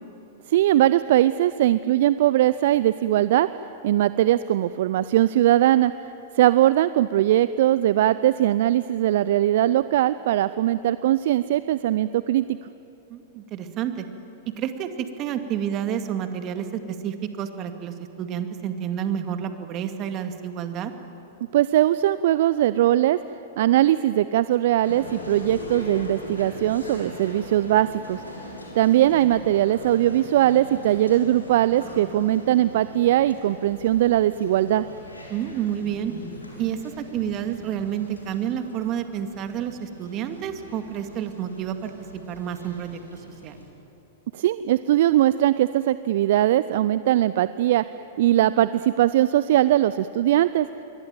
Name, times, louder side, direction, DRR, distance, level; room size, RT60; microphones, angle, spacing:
voice 1, 0.5-3.5 3.8-12.6 21.5-23.2 23.6-28.2 28.7-34.9 44.3-47.8 48.2-50.7, right 13 dB, 60° right, 15 dB, 0.5 m, -20 dB
voice 2, 13.1-14.1 14.6-20.9 35.3-36.1 36.6-41.9 42.3-43.6, right 9 dB, 35° right, 7 dB, 2.2 m, -29 dB
Male speech man speaking, 24.8-43.7, left 2 dB, 90° left, 6.0 m, -41 dB
27.5 x 23.0 x 9.1 m, 2.9 s
figure-of-eight pair, 100°, 0 cm